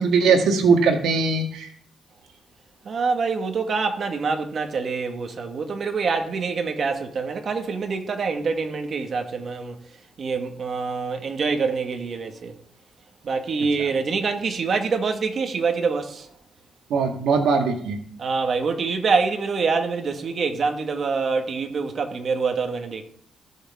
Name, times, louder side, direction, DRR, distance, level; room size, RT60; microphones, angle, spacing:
voice 1, 0.0-1.7 16.9-18.0, right 4 dB, 90° right, 1.7 m, -20 dB
voice 2, 2.8-9.8 10.2-12.6 13.2-16.3 18.2-23.0, right 4 dB, 55° right, 1.8 m, -25 dB
19.5 x 6.5 x 3.7 m
cardioid pair, 80°, 0 cm